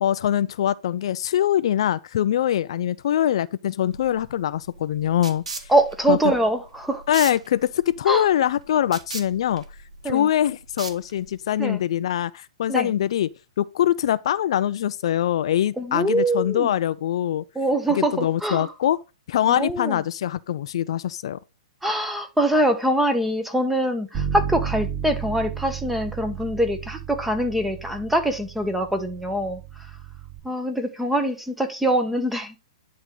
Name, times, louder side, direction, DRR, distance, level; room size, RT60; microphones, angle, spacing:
voice 1, 0.0-5.7 6.1-6.2 7.1-9.6 10.0-13.3 13.6-17.4 17.9-19.0 19.3-21.4, left 11 dB, 60° left, 0.4 m, -23 dB
sound 1, 3.9-11.5, right 3 dB, 85° right, 1.8 m, -39 dB
voice 2, 5.7-7.0 8.1-8.3 10.0-10.3 11.6-11.8 12.7-12.9 15.8-16.7 17.5-18.7 19.5-20.0 21.8-29.6 30.4-32.6, right 1 dB, 5° right, 1.2 m, -24 dB
Bass guitar, 24.1-30.4, right 8 dB, 35° right, 4.0 m, -33 dB
10.0 x 3.7 x 4.7 m
hypercardioid pair, 125°, 3 cm